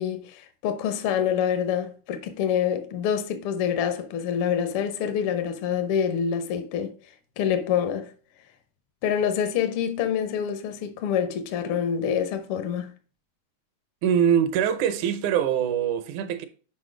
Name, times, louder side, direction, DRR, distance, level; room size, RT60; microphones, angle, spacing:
voice 1, 0.0-6.9 7.4-8.1 9.0-12.9, left 8 dB, 80° left, 1.2 m, -26 dB
voice 2, 14.0-16.5, right 9 dB, 75° right, 2.0 m, -23 dB
6.2 x 5.2 x 4.9 m
omnidirectional pair, 3.7 m